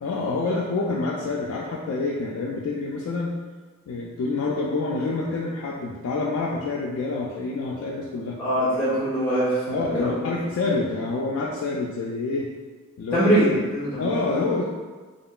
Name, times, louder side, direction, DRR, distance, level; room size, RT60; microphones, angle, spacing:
voice 1, 0.0-3.4 3.9-8.4 9.7-12.5 13.0-13.6 14.0-14.6, left 3 dB, 70° left, -4 dB, 0.3 m, -27 dB
voice 2, 8.4-10.1 13.1-14.0, right 1 dB, 10° left, -10 dB, 0.6 m, -22 dB
2.8 x 2.4 x 2.3 m, 1.4 s
head